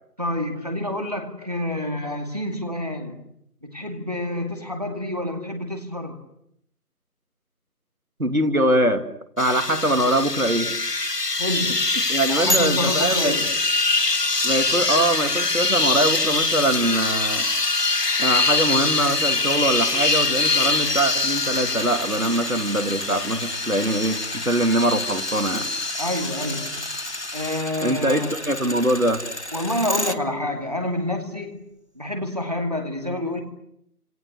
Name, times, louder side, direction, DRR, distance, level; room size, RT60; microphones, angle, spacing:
voice 1, 0.2-3.3 3.6-6.2 11.4-11.9 12.3-13.5 26.0-26.8 27.3-28.5 29.5-31.7 31.9-33.4, left 1 dB, 25° right, 4 dB, 2.4 m, -28 dB
voice 2, 8.2-9.0 9.4-10.8 12.1-13.3 14.4-17.5 18.2-25.7 27.8-29.2, right 1 dB, 60° right, 7 dB, 2.8 m, -23 dB
sound 1, 9.4-27.6, left 3 dB, 90° left, 1.6 m, -24 dB
sound 2, 12.5-30.2 30.6-30.7, equal, 45° left, 1.2 m, -34 dB
29.5 x 27.5 x 6.7 m, 0.74 s
figure-of-eight pair, 175°, 47 cm